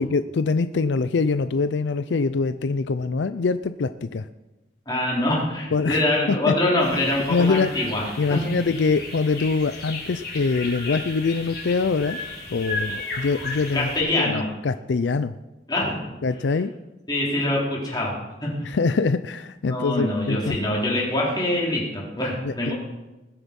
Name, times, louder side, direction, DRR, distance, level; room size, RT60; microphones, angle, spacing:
voice 1, 0.0-4.3 5.7-6.5 7.3-7.7 8.2-12.2 12.5-13.9 14.2-15.3 16.2-16.7 18.6-20.6 22.4-22.7, left 4 dB, 80° left, 12 dB, 0.5 m, -24 dB
voice 2, 4.9-8.0 8.3-8.4 13.7-14.4 15.7-16.0 17.1-18.1 18.4-18.8 19.7-22.7, left 1 dB, 20° left, -4 dB, 4.0 m, -24 dB
sound 1, 6.8-14.0, left 3 dB, 60° left, 5.0 m, -34 dB
20.5 x 8.1 x 5.4 m, 1.1 s
head